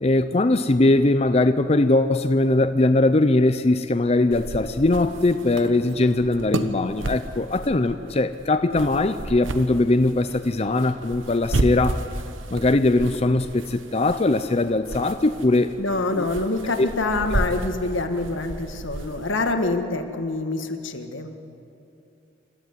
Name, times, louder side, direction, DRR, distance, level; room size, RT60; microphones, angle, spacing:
voice 1, 0.0-12.0 12.5-15.7 16.2-16.3 16.8-16.9, left 2 dB, 30° left, 9 dB, 0.6 m, -20 dB
sound 1, 4.3-19.5, right 1 dB, 85° right, 1.2 m, -32 dB
voice 2, 15.8-21.3, left 2 dB, 85° left, 6 dB, 1.8 m, -26 dB
27.0 x 13.5 x 9.8 m, 2.6 s
head